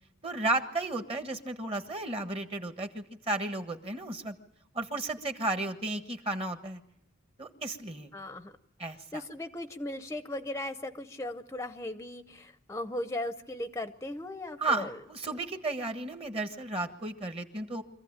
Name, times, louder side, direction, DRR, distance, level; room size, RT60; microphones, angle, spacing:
voice 1, 0.2-4.4 4.7-6.8 7.4-8.1 8.8-9.2 14.6-17.8, right 2 dB, 30° right, 8 dB, 1.5 m, -33 dB
voice 2, 8.1-8.5 9.1-15.0, left 1 dB, 15° left, 9 dB, 0.7 m, -37 dB
25.0 x 15.0 x 8.8 m, 0.79 s
head